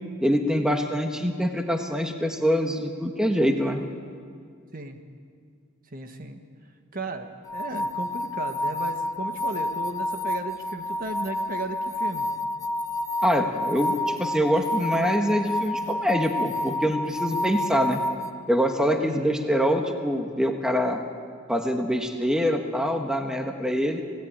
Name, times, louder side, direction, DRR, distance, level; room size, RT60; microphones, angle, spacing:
voice 1, 0.2-3.8 13.2-18.0 18.5-21.0 21.5-24.0, equal, 5° right, 3 dB, 1.5 m, -24 dB
voice 2, 5.9-6.4 6.9-12.3 19.0-19.5, right 2 dB, 40° right, 5 dB, 1.6 m, -35 dB
sound 1, 7.5-18.3, left 1 dB, 15° left, 0.9 m, -29 dB
27.5 x 18.0 x 9.0 m, 2.2 s
head